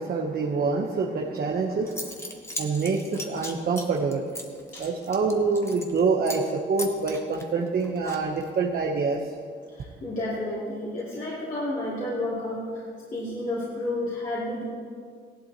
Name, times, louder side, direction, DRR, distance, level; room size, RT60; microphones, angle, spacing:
voice 1, 0.0-2.2 2.6-4.3 4.8-9.3, right 4 dB, 50° right, 0 dB, 1.0 m, -26 dB
Zipper (clothing) / Coin (dropping), 1.5-1.6 1.9-6.0 6.3-6.5 6.8-8.6, left 1 dB, 15° left, 1.4 m, -38 dB
voice 2, 9.7-12.8 13.1-14.6, left 1 dB, 40° left, -9 dB, 2.9 m, -31 dB
16.0 x 11.5 x 3.0 m, 2.1 s
cardioid pair, 90°, 20 cm